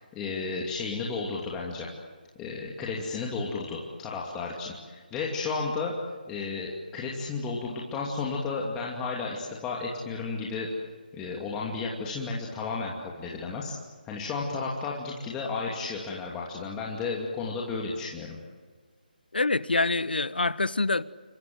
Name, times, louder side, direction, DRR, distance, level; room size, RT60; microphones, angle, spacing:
voice 1, 0.1-1.9 2.4-6.0 6.3-10.7 11.1-13.8 14.0-18.4, left 4 dB, 10° left, -3 dB, 2.7 m, -33 dB
voice 2, 19.3-21.0, left 3 dB, 75° left, 17 dB, 1.2 m, -25 dB
29.0 x 24.5 x 7.9 m, 1.5 s
figure-of-eight pair, 155°, 5 cm